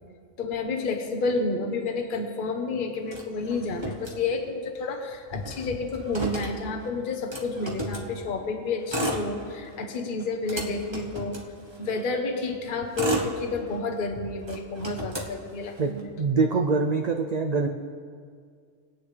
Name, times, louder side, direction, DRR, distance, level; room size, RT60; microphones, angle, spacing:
voice 1, 0.4-11.4 11.8-16.1, left 3 dB, 45° left, 4 dB, 1.1 m, -30 dB
Motor vehicle (road), 3.1-4.7 5.0-5.1 5.3-8.1 8.7-9.8 10.2-12.0 12.6-14.0 14.4-16.0, right 1 dB, 20° right, 1.1 m, -34 dB
voice 2, 16.2-17.7, right 4 dB, 55° right, 3 dB, 0.4 m, -24 dB
20.5 x 8.6 x 3.3 m, 2.1 s
omnidirectional pair, 1.3 m